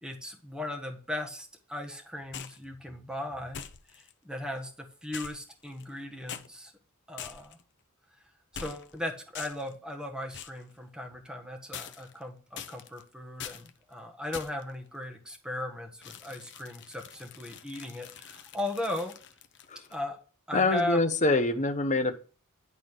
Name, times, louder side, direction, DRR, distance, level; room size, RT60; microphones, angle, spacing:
voice 1, 0.0-3.6 3.9-6.7 7.1-7.6 8.5-19.1 19.9-20.2 20.5-21.0, left 1 dB, 5° right, 2 dB, 1.4 m, -37 dB
sound 1, 2.3-2.6 3.5-4.1 5.1-6.0 6.3-6.5 7.2-7.6 8.5-9.0 9.3-9.7 10.3-10.6 11.7-12.2 12.6-13.0 13.4-13.7 14.3-14.7 16.0-20.0, left 8 dB, 55° left, 0.7 m, -44 dB
voice 2, 20.5-22.1, left 2 dB, 35° left, 7 dB, 1.0 m, -25 dB
11.0 x 4.0 x 6.6 m, 0.39 s
head